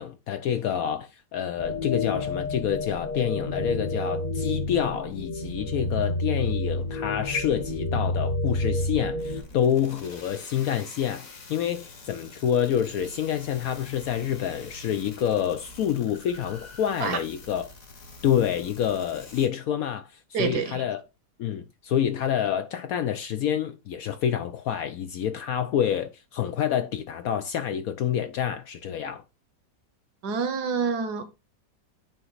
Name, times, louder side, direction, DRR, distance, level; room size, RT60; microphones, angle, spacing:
voice 1, 0.0-17.7 18.2-20.1 20.4-21.0 21.4-29.2, left 9 dB, 70° left, 0.9 m, -27 dB
sound 1, 1.6-9.4, left 2 dB, 35° left, 0.9 m, -29 dB
sound 2, 9.2-19.5, left 2 dB, 50° left, 1.8 m, -46 dB
voice 2, 20.3-20.8 30.2-31.2, right 6 dB, 70° right, 1.4 m, -27 dB
8.8 x 3.0 x 3.9 m
omnidirectional pair, 1.9 m